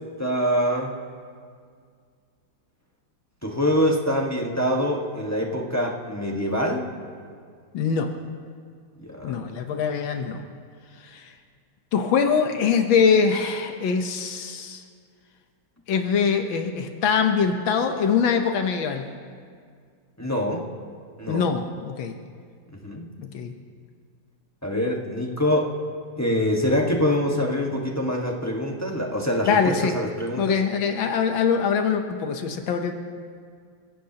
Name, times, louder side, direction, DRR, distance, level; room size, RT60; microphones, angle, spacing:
voice 1, 0.2-1.0 3.4-6.9 9.0-9.5 20.2-20.7 21.2-21.5 22.7-23.1 24.6-25.7 26.2-30.6, equal, 10° left, -1 dB, 1.0 m, -25 dB
voice 2, 7.7-8.1 9.2-10.4 11.0-11.3 11.9-14.8 15.9-19.1 21.3-22.1 23.2-23.5 29.4-29.9 30.4-32.9, left 6 dB, 85° left, 5 dB, 1.7 m, -23 dB
28.5 x 16.0 x 2.9 m, 2.1 s
omnidirectional pair, 2.1 m